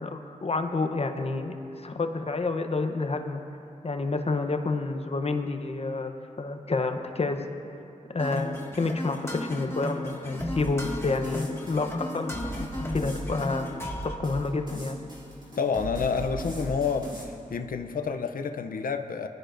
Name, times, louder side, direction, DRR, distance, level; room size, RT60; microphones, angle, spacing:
voice 1, 0.0-3.4 3.8-7.4 8.1-13.8 14.0-15.0, left 3 dB, 45° left, 6 dB, 0.8 m, -29 dB
sound 1, 8.2-14.2, left 1 dB, 20° left, 1.4 m, -34 dB
sound 2, 10.4-17.2, right 1 dB, 30° right, 3.1 m, -39 dB
voice 2, 15.6-19.3, left 5 dB, 80° left, 6 dB, 0.6 m, -29 dB
21.0 x 12.5 x 2.6 m, 2.7 s
wide cardioid pair, 70°, 14 cm